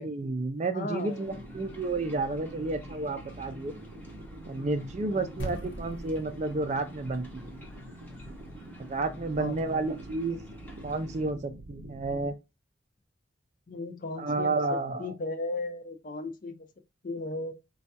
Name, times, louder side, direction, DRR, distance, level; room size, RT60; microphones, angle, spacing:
voice 1, 0.0-3.7 4.5-7.5 8.9-10.4 10.8-12.3 14.2-15.1, right 3 dB, 35° right, 0.4 m, -31 dB
voice 2, 0.7-1.3 5.1-5.6 9.4-9.8 13.7-14.6 15.0-16.7 17.0-17.5, left 3 dB, 45° left, 0.4 m, -36 dB
sound 1, 0.9-11.3, right 1 dB, 10° left, 0.7 m, -50 dB
sound 2, 1.2-12.3, right 1 dB, 90° right, 0.5 m, -46 dB
sound 3, 5.4-9.9, right 1 dB, 65° left, 0.8 m, -44 dB
4.3 x 2.3 x 2.6 m
head